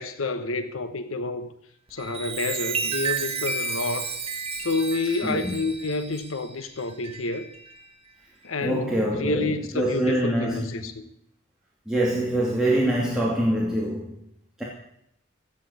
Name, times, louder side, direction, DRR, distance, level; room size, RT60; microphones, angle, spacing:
voice 1, 0.0-1.5 1.9-4.1 4.6-7.5 8.4-11.0, left 3 dB, 80° left, 1.1 m, -29 dB
Chime, 1.9-7.9 8.4-8.7, right 5 dB, 30° right, 1.1 m, -32 dB
voice 2, 5.2-5.6 8.6-10.8 11.9-14.2 14.6-14.7, right 1 dB, 5° right, 2.7 m, -25 dB
15.5 x 8.6 x 8.4 m
head